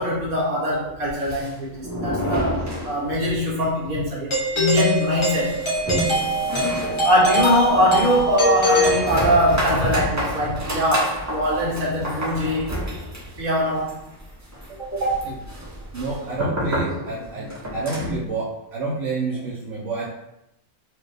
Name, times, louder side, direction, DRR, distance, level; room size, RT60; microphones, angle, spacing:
voice 1, 0.0-2.6 2.8-5.6 7.0-12.8 13.4-14.0 14.9-15.3, equal, 90° right, -6 dB, 1.8 m, -22 dB
sound 1, 1.0-3.4 3.7-3.8 4.1-4.2 4.6-18.3, equal, 15° right, 0.6 m, -30 dB
Doorbell, 4.3-9.7, equal, 35° left, 0.5 m, -23 dB
voice 2, 15.9-20.0, right 3 dB, 65° right, -6 dB, 1.0 m, -29 dB
4.5 x 2.3 x 3.2 m, 0.85 s
omnidirectional pair, 1.5 m